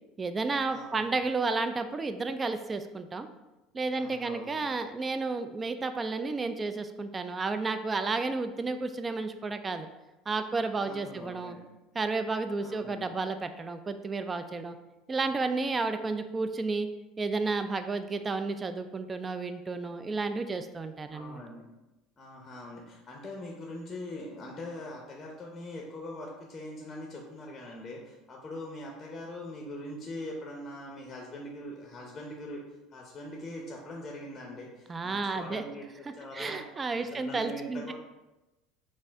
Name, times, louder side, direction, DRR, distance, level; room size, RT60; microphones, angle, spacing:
voice 1, 0.2-3.3 3.7-9.9 10.3-11.6 11.9-14.8 15.1-16.9 17.2-21.4 34.9-35.6 36.3-37.9, right 3 dB, 25° right, 9 dB, 0.3 m, -32 dB
voice 2, 0.7-1.2 4.0-4.8 10.8-11.6 12.6-13.1 21.1-21.7 22.2-32.6 32.9-36.6 37.0-37.9, left 1 dB, 25° left, -1 dB, 0.7 m, -42 dB
4.2 x 2.4 x 3.4 m, 1.0 s
supercardioid pair, 95°, 0 cm